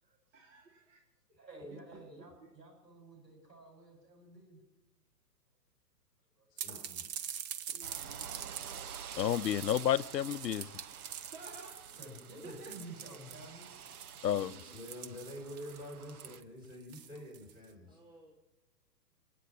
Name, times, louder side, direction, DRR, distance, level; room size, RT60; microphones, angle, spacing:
voice 1, 0.3-1.0 1.3-2.0 2.4-2.5 6.7-6.9 7.7-8.4 11.3-11.9 12.4-13.1 14.3-14.8 17.9-18.3, right 2 dB, 45° right, -1 dB, 3.0 m, -54 dB
voice 2, 1.4-4.6 6.4-6.6 11.2-11.3 12.0-14.4 17.1-17.3, right 1 dB, 90° right, 1 dB, 7.8 m, -52 dB
voice 3, 6.6-7.0 14.4-18.0, left 1 dB, 10° right, 0 dB, 6.1 m, -47 dB
sound 1, 6.6-17.6, right 9 dB, 25° right, 0.7 m, -45 dB
sound 2, 7.8-16.4, right 8 dB, 65° right, 1.1 m, -49 dB
voice 4, 9.2-10.7 14.2-14.5, left 10 dB, 85° left, 18 dB, 0.6 m, -30 dB
24.5 x 9.3 x 6.0 m, 1.0 s
hypercardioid pair, 125°, 48 cm